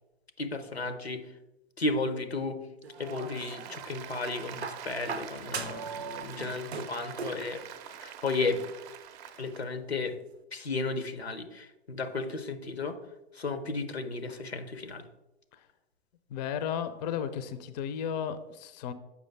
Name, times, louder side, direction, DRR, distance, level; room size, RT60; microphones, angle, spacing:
voice 1, 0.4-1.3 1.8-2.6 3.0-7.6 8.0-8.6 9.4-10.1 10.5-13.0 13.3-15.0, left 3 dB, 90° left, 10 dB, 0.7 m, -33 dB
sound 1, 2.8-3.8 4.6-6.0 6.2-7.5 8.6-8.7, right 5 dB, 85° right, 0.5 m, -40 dB
Applause, 2.9-9.6, right 7 dB, 40° right, 0.6 m, -43 dB
voice 2, 16.3-18.9, left 8 dB, 45° left, 13 dB, 0.5 m, -34 dB
6.9 x 5.0 x 3.2 m, 0.98 s
figure-of-eight pair, 95°, 31 cm